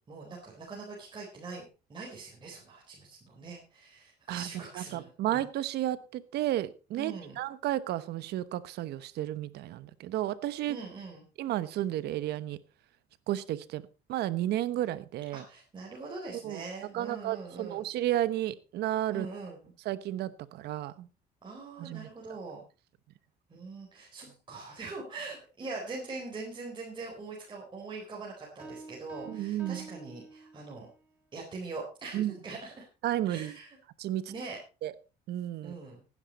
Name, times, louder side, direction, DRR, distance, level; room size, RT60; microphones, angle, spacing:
voice 1, 0.1-1.6 1.9-5.4 7.0-7.4 10.7-11.2 15.3-17.8 19.1-19.6 21.4-22.6 23.5-30.9 31.3-32.8 33.2-33.8 34.3-34.6 35.6-36.0, right 3 dB, 30° right, -2 dB, 4.2 m, -42 dB
voice 2, 4.7-10.8 11.4-12.6 13.3-13.8 14.1-15.4 16.4-16.6 16.9-19.3 19.8-21.1 21.8-22.1 29.3-29.9 32.1-32.3 33.0-33.5 34.0-34.3 34.8-34.9 35.3-35.7, right 13 dB, 75° right, 16 dB, 1.0 m, -32 dB
Piano, 28.6-31.0, right 2 dB, 10° right, 3.4 m, -48 dB
15.5 x 9.9 x 4.2 m, 0.33 s
cardioid pair, 110°, 17 cm